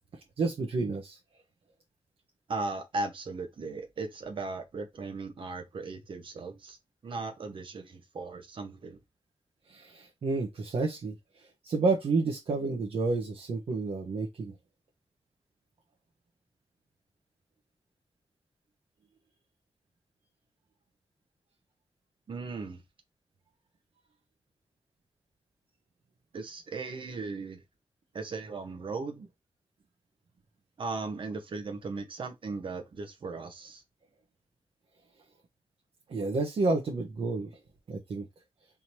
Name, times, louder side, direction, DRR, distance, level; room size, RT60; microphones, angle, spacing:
voice 1, 0.4-1.2 9.7-14.5 36.1-37.5 37.9-38.3, right 3 dB, 75° right, 1.1 m, -30 dB
voice 2, 2.5-6.8 7.0-9.0 22.3-22.8 26.3-27.6 28.1-29.3 30.8-33.8, right 3 dB, 60° right, 1.1 m, -37 dB
3.6 x 2.9 x 4.6 m
wide cardioid pair, 180°, 10 cm